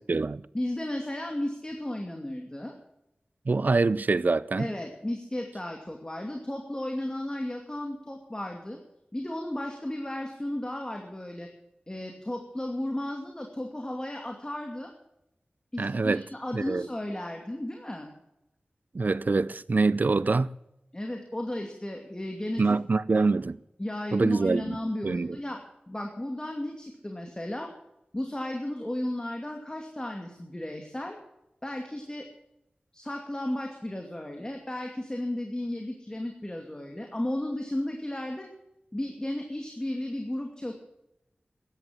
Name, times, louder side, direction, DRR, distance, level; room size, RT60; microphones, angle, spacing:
voice 1, 0.0-0.4 3.5-4.7 15.8-16.2 16.5-16.9 18.9-20.5 22.6-23.6 24.1-24.8 25.0-25.4, right 3 dB, 60° right, 0.6 m, -25 dB
voice 2, 0.5-2.7 4.6-8.8 9.1-11.5 11.9-14.9 15.7-18.1 20.9-22.8 23.1-23.2 23.8-25.6 25.9-27.7 28.1-31.2 31.6-32.3 32.9-38.5 38.9-40.7, left 1 dB, 25° left, 2.5 m, -34 dB
13.5 x 11.0 x 7.6 m
cardioid pair, 40°, 3 cm